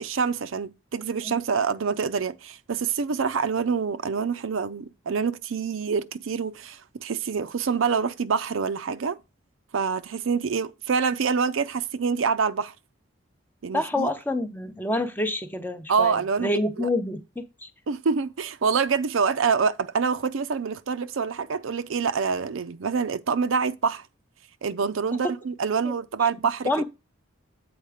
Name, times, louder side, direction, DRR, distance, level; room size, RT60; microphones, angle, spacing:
voice 1, 0.0-9.2 9.7-12.7 13.6-14.1 15.9-16.9 17.9-24.0 24.6-26.7, right 5 dB, 80° right, 0.5 m, -26 dB
voice 2, 13.7-17.7 25.8-25.9 26.7-26.8, left 2 dB, 10° left, 0.6 m, -28 dB
8.0 x 4.6 x 4.9 m
head